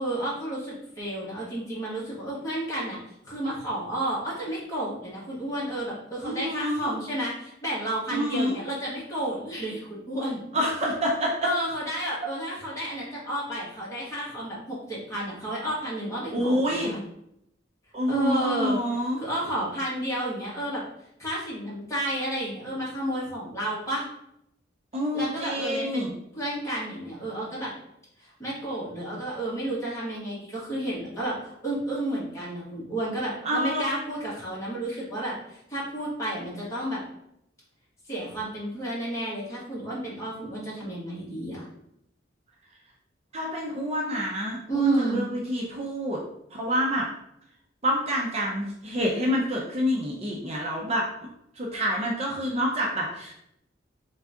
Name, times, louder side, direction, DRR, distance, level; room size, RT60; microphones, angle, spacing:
voice 1, 0.0-3.0 3.2-10.4 11.4-17.0 18.1-18.8 19.2-20.8 21.2-24.0 25.1-27.7 28.4-37.0 38.1-41.7 44.7-45.3, right 1 dB, 15° left, -7 dB, 1.7 m, -31 dB
voice 2, 6.2-6.9 8.1-8.6 10.5-11.5 16.3-16.9 17.9-19.2 24.9-26.1 33.4-33.9 43.3-46.2 46.5-47.1 47.8-51.1 51.6-53.3, equal, 35° right, -1 dB, 0.7 m, -27 dB
3.9 x 3.6 x 3.5 m, 0.76 s
head